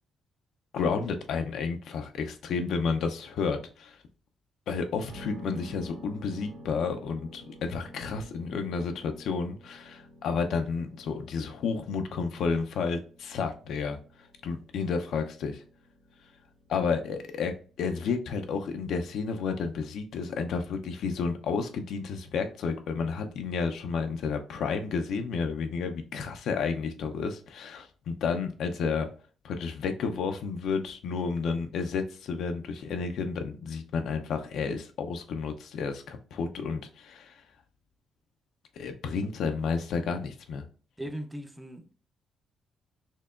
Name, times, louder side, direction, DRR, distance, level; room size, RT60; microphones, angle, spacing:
voice 1, 0.7-4.0 4.7-14.0 14.4-15.6 16.7-29.1 29.4-37.3 38.8-40.6, left 5 dB, 75° left, 0.5 m, -31 dB
sound 1, 5.1-20.9, equal, 70° right, 1.1 m, -51 dB
voice 2, 41.0-42.0, equal, 10° right, 0.5 m, -38 dB
4.4 x 2.8 x 2.4 m
cardioid pair, 90°, 0 cm